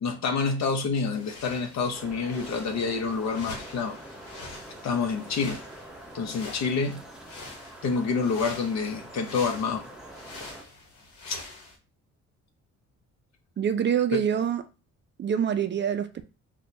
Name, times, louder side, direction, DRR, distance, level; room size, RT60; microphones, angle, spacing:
voice 1, 0.0-4.0 4.8-5.6 6.1-7.0 7.8-9.8 11.3-11.4 14.1-14.2, left 5 dB, 60° left, 0.7 m, -28 dB
sound 1, 1.0-11.8, left 3 dB, 85° left, 1.0 m, -45 dB
sound 2, 1.9-10.6, right 1 dB, ahead, 0.6 m, -45 dB
voice 2, 13.6-14.6 15.2-16.2, right 8 dB, 40° right, 0.4 m, -25 dB
4.2 x 2.2 x 2.7 m
cardioid pair, 90°, 30 cm